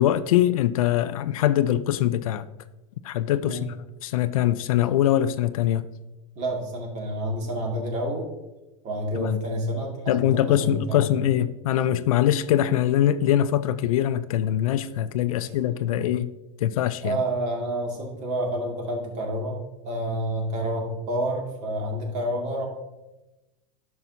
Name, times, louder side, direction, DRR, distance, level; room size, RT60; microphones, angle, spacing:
voice 1, 0.0-2.5 3.0-3.8 4.0-5.9 9.1-9.4 10.1-16.3 16.6-17.2, left 11 dB, 85° left, 0.4 m, -23 dB
voice 2, 6.4-8.3 8.8-11.1 15.4-15.5 15.9-16.1 17.0-19.6 19.8-22.7, right 1 dB, 45° right, 2.1 m, -29 dB
11.0 x 5.9 x 2.7 m
supercardioid pair, 120°, 17 cm